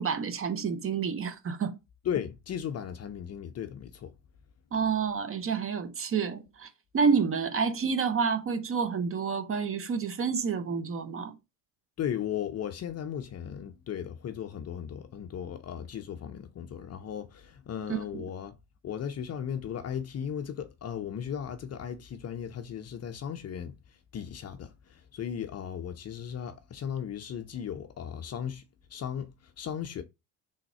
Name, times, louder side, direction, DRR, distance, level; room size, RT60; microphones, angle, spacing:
voice 1, 0.0-1.8 4.7-6.7 6.9-11.4 17.9-18.2, right 6 dB, 30° right, 0.6 m, -29 dB
voice 2, 2.0-4.1 12.0-18.6 18.8-23.7 24.1-28.6 28.9-30.0, left 8 dB, 35° left, 0.6 m, -36 dB
3.5 x 2.2 x 4.1 m
hypercardioid pair, 65°, 46 cm